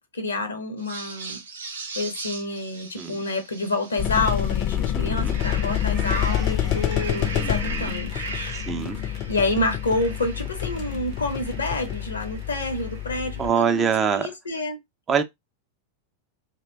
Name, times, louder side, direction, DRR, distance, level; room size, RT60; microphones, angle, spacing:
voice 1, 0.1-1.4 2.0-8.5 9.0-14.8, left 2 dB, 75° left, 0.7 m, -28 dB
sound 1, 0.8-4.7 5.1-13.8, right 4 dB, 70° right, 0.6 m, -39 dB
sound 2, 4.0-13.5, left 11 dB, 40° left, 0.5 m, -27 dB
voice 2, 4.7-5.4 5.9-6.5 7.4-7.9 8.5-9.0 13.4-14.3 15.1-15.2, right 7 dB, 25° right, 0.4 m, -26 dB
2.5 x 2.1 x 3.3 m
figure-of-eight pair, 90°, 0 cm